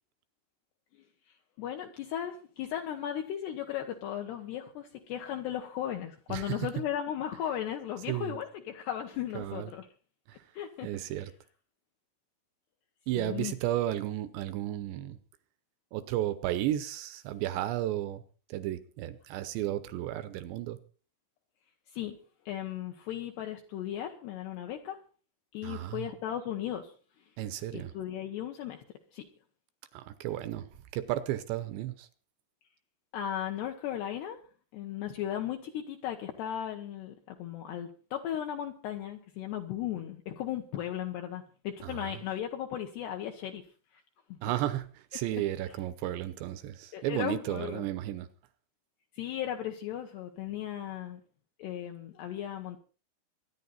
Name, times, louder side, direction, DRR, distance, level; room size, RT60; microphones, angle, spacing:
voice 1, 1.6-9.9 10.5-10.9 13.1-13.5 21.9-22.2 22.5-25.0 25.5-26.9 27.7-28.8 29.1-29.3 33.1-34.4 34.7-43.6 44.3-44.4 45.3-45.4 46.9-47.9 49.1-51.2 51.6-52.8, left 10 dB, 70° left, 2.8 m, -36 dB
voice 2, 8.1-8.4 9.3-9.7 10.8-11.3 13.1-15.2 15.9-18.2 18.5-20.8 25.6-26.1 27.4-27.9 29.9-30.7 30.9-32.1 41.8-42.2 44.4-48.3, right 13 dB, 75° right, 2.7 m, -33 dB
24.5 x 10.0 x 4.2 m
omnidirectional pair, 5.8 m